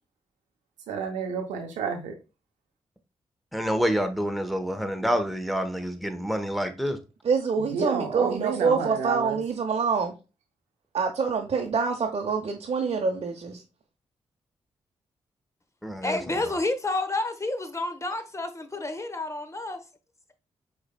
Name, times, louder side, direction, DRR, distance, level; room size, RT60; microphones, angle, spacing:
voice 1, 0.9-2.1 7.7-9.4, right 6 dB, 90° right, 0.7 m, -30 dB
voice 2, 3.5-7.0 15.8-16.2, equal, ahead, 1.0 m, -27 dB
voice 3, 7.2-10.1 10.9-13.6, right 5 dB, 55° right, 0.8 m, -26 dB
voice 4, 16.0-19.8, left 2 dB, 25° left, 1.0 m, -29 dB
4.8 x 4.2 x 2.2 m
supercardioid pair, 45°, 12 cm